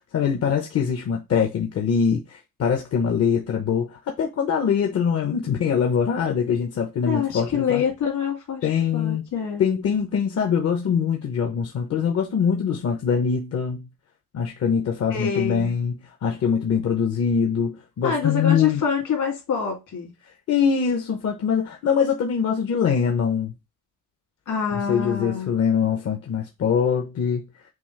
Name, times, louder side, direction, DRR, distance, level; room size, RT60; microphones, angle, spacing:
voice 1, 0.1-7.8 8.6-9.2 9.6-13.9 14.3-18.8 20.5-23.5 24.9-27.4, left 7 dB, 45° left, 0.8 m, -23 dB
voice 2, 7.0-8.7 8.9-9.7 15.1-15.7 18.0-20.1 24.5-25.5, left 7 dB, 65° left, 2.4 m, -26 dB
6.1 x 2.4 x 3.1 m
cardioid pair, 155°, 33 cm